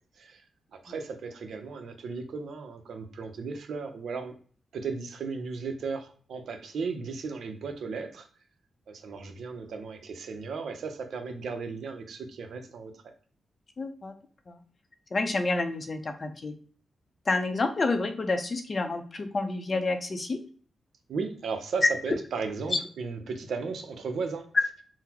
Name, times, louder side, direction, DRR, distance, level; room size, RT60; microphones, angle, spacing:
voice 1, 0.7-4.3 4.7-8.3 8.9-13.0 21.1-24.5, right 4 dB, 75° right, 7 dB, 0.6 m, -35 dB
voice 2, 13.8-14.1 14.5-14.6 15.1-16.5 17.3-20.4, left 3 dB, 40° left, 7 dB, 0.5 m, -29 dB
3.8 x 2.0 x 2.9 m, 0.44 s
cardioid pair, 95°, 0 cm